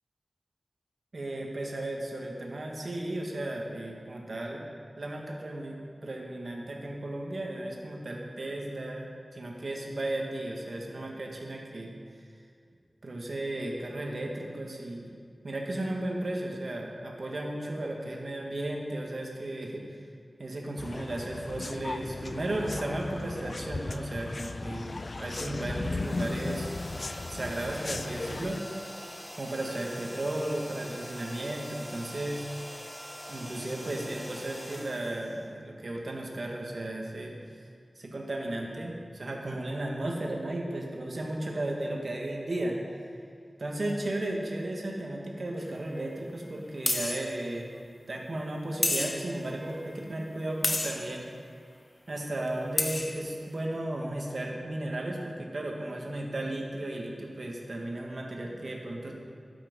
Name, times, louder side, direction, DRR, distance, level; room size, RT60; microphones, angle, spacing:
voice 1, 1.1-4.7 5.0-11.9 13.0-15.1 15.4-19.8 20.4-24.9 25.2-26.7 27.3-28.6 29.3-32.4 33.3-37.3 38.0-42.8 43.6-47.7 48.1-51.3 52.1-59.1, right 1 dB, 65° right, -1 dB, 1.8 m, -35 dB
sound 1, 20.8-28.6, left 3 dB, 55° left, 0.3 m, -36 dB
sound 2, 25.9-35.9, equal, 10° left, 1.1 m, -44 dB
sound 3, 45.6-45.7 46.9-47.3 48.8-49.4 50.6-51.1 52.5-52.6 52.8-53.2, left 2 dB, 40° left, 0.9 m, -29 dB
12.0 x 8.9 x 5.4 m, 2.3 s
wide cardioid pair, 75°, 0 cm